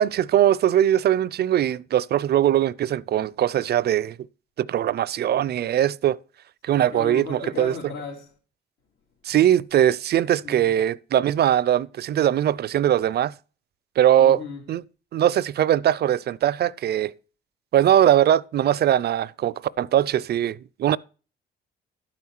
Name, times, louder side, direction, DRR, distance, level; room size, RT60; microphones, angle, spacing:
voice 1, 0.0-4.2 4.6-6.2 6.6-7.7 9.2-13.3 14.0-14.4 14.7-14.8 15.1-17.1 17.7-21.0, right 11 dB, 55° right, 0.4 m, -21 dB
voice 2, 6.7-8.3 10.4-10.7 14.2-14.6, left 5 dB, 85° left, 2.5 m, -36 dB
12.0 x 5.7 x 4.6 m
cardioid pair, 90°, 20 cm